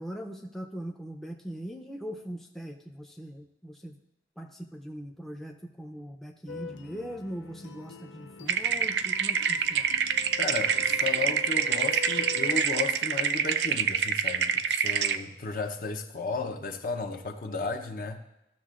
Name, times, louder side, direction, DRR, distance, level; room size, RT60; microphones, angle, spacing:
voice 1, 0.0-4.0 4.4-9.9, equal, ahead, 0.5 m, -40 dB
sound 1, 6.5-12.6, left 3 dB, 85° left, 0.6 m, -43 dB
sound 2, 8.5-15.2, right 7 dB, 65° right, 0.4 m, -26 dB
voice 2, 10.4-18.2, left 4 dB, 50° left, 0.7 m, -34 dB
15.0 x 6.5 x 2.5 m
head